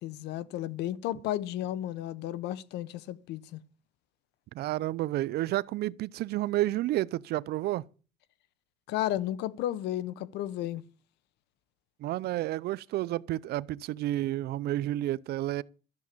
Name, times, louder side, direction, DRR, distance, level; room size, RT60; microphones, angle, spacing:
voice 1, 0.0-3.6 8.9-10.8, left 13 dB, 85° left, 0.9 m, -33 dB
voice 2, 4.5-7.8 12.0-15.6, right 15 dB, 70° right, 0.5 m, -30 dB
13.0 x 7.3 x 8.3 m
cardioid pair, 110°, 17 cm